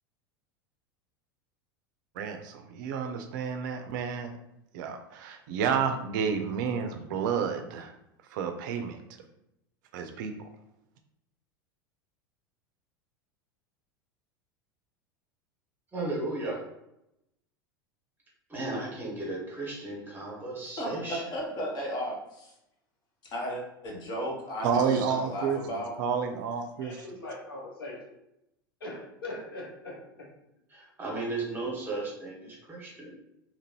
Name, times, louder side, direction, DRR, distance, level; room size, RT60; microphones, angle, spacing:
voice 1, 2.2-4.3 4.7-7.9 8.3-9.0 9.9-10.5 24.6-25.6 26.0-27.1, right 6 dB, 60° right, 6 dB, 0.4 m, -30 dB
voice 2, 15.9-16.6 18.5-21.2 30.7-33.2, right 2 dB, 15° right, -3 dB, 1.2 m, -35 dB
voice 3, 20.8-22.5 23.2-25.9, equal, 35° left, -2 dB, 1.2 m, -35 dB
voice 4, 26.8-28.0 28.8-30.0, left 2 dB, 80° left, -3 dB, 1.0 m, -40 dB
2.9 x 2.5 x 2.8 m, 0.83 s
figure-of-eight pair, 85°, 12 cm